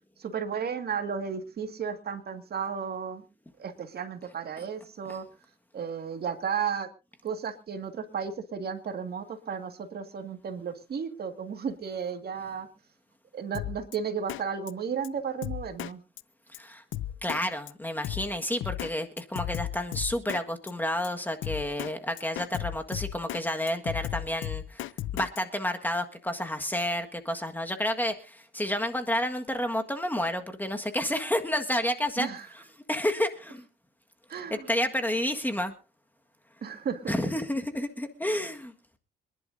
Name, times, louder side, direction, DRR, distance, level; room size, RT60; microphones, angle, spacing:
voice 1, 0.2-3.2 3.6-5.3 5.7-6.9 7.2-12.7 13.3-16.0 32.2-32.5 34.3-34.7 36.6-37.1, right 6 dB, 50° right, 7 dB, 2.1 m, -34 dB
Drum kit, 13.5-14.0 14.3-14.4 14.7-14.8 15.0-15.1 15.4-16.2 16.5-16.6 16.9-17.4 17.7-17.8 18.0-18.9 19.2-20.4 20.7-20.8 21.0-21.1 21.4-21.9 22.2-23.4 23.7-25.4, left 13 dB, 80° left, 0.6 m, -34 dB
voice 2, 17.2-24.9 25.1-32.6 32.9-33.6 34.5-35.7 37.1-38.7, left 1 dB, 10° left, 5 dB, 1.6 m, -30 dB
26.0 x 11.0 x 2.7 m, 0.31 s
cardioid pair, 90°, 20 cm